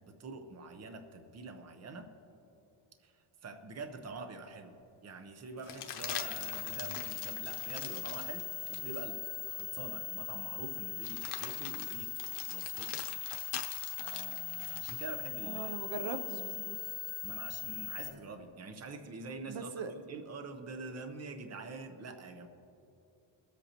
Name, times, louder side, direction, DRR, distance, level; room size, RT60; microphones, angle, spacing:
voice 1, 0.1-2.1 3.0-4.7 5.0-9.2 9.5-12.2 12.5-13.2 14.0-15.7 17.2-22.5, right 3 dB, 30° right, 6 dB, 0.8 m, -45 dB
sound 1, 4.0-4.1 5.6-9.0 9.6-9.7 11.0-15.1 17.2-18.1, left 9 dB, 85° left, 0.9 m, -44 dB
sound 2, 6.0-18.1, left 11 dB, 25° left, 1.1 m, -40 dB
voice 2, 15.4-16.8 19.5-19.9, right 5 dB, 65° right, 8 dB, 0.8 m, -40 dB
22.5 x 8.2 x 2.9 m, 2.7 s
cardioid pair, 150°, 49 cm